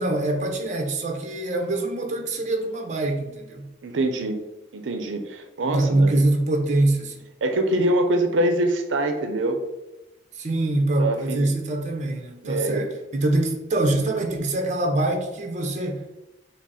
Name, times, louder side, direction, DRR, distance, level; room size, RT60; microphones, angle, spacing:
voice 1, 0.0-3.7 5.6-7.2 10.3-16.1, right 2 dB, 40° right, 3 dB, 0.7 m, -24 dB
voice 2, 3.8-4.4 4.7-6.2 7.4-9.6 11.0-11.5 12.4-12.8, right 1 dB, 90° right, 6 dB, 0.5 m, -24 dB
6.0 x 2.0 x 4.1 m, 0.98 s
head